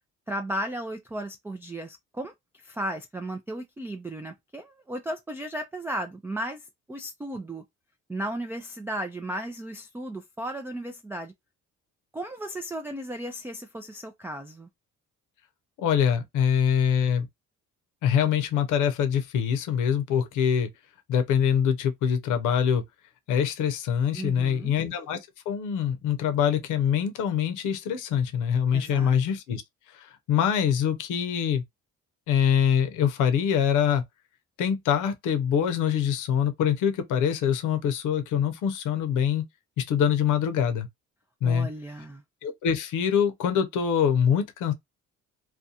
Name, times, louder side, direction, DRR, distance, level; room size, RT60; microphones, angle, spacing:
voice 1, 0.3-2.3 2.6-7.6 8.1-11.3 12.1-14.7 24.1-24.7 28.7-29.2 41.4-42.2, right 1 dB, 10° right, 0.3 m, -35 dB
voice 2, 15.8-17.3 18.0-20.7 21.1-22.8 23.3-25.2 25.5-29.6 29.9-31.6 32.3-34.0 34.6-39.4 39.8-40.9 41.4-41.7 42.4-44.7, left 8 dB, 90° left, 0.7 m, -24 dB
2.4 x 2.2 x 2.7 m
cardioid pair, 90°, 30 cm